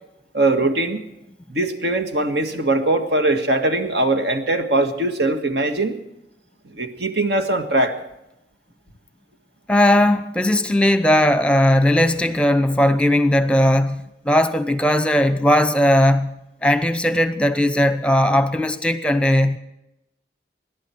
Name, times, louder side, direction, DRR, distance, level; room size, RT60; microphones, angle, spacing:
voice 1, 0.3-1.0 1.5-6.0 6.7-8.0, right 2 dB, 75° right, 1.7 m, -21 dB
voice 2, 9.7-19.6, left 1 dB, 5° left, 0.8 m, -18 dB
26.0 x 11.5 x 4.6 m
head